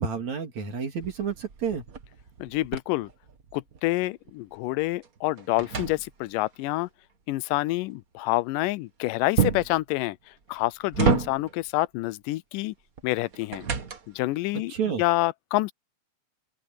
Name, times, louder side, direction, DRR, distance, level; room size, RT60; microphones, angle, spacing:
voice 1, 0.0-1.8 14.7-15.0, right 6 dB, 60° right, 4.4 m, -30 dB
sound 1, 1.0-3.9 4.3-6.5 9.4-9.8 10.5-11.7 13.0-14.3, right 6 dB, 40° right, 1.3 m, -29 dB
voice 2, 2.4-3.1 3.5-6.9 7.3-10.2 10.5-12.8 13.0-13.6 14.1-15.7, left 19 dB, 90° left, 2.2 m, -27 dB
open air
omnidirectional pair, 3.7 m